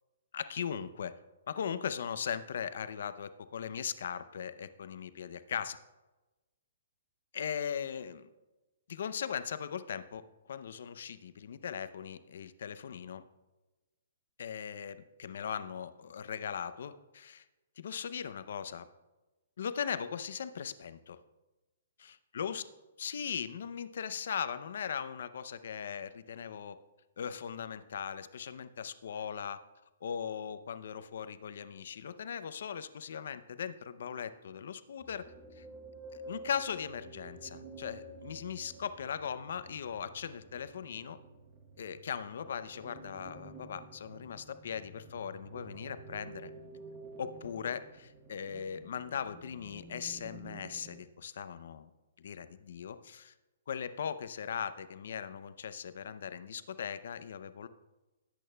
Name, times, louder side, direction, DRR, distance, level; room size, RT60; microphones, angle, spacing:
voice 1, 0.3-1.2 1.5-5.8 7.3-8.3 8.9-10.2 10.5-13.2 14.4-17.4 17.8-18.9 19.6-21.2 22.0-22.6 23.0-26.8 27.2-29.6 30.0-35.2 35.6-35.7 36.3-41.2 41.8-46.5 47.2-51.9 52.2-53.3 53.7-57.7, left 7 dB, 65° left, 13 dB, 0.5 m, -39 dB
sound 1, 35.0-51.0, right 2 dB, 20° right, 0.9 m, -51 dB
17.0 x 8.6 x 2.2 m, 1.1 s
hypercardioid pair, 165°, 0 cm